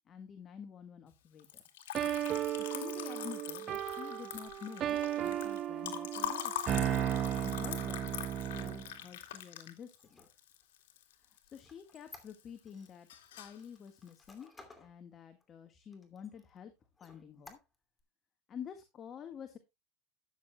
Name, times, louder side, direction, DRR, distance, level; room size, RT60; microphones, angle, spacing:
voice 1, 0.0-1.6 2.6-6.7 7.4-10.3 11.4-13.1 13.4-14.5 14.8-16.7 17.0-17.6 18.5-19.6, left 8 dB, 30° left, 8 dB, 1.6 m, -49 dB
Liquid, 1.4-11.6 11.9-12.6 12.8-13.6, left 11 dB, 85° left, 2.5 m, -43 dB
sound 1, 1.9-8.9, right 11 dB, 35° right, 0.7 m, -35 dB
Squeak, 9.9-12.9 13.3-14.9 15.4-15.5 15.9-16.6 17.0-18.0, left 3 dB, 15° left, 2.6 m, -57 dB
13.0 x 9.6 x 2.3 m, 0.22 s
supercardioid pair, 130°, 0 cm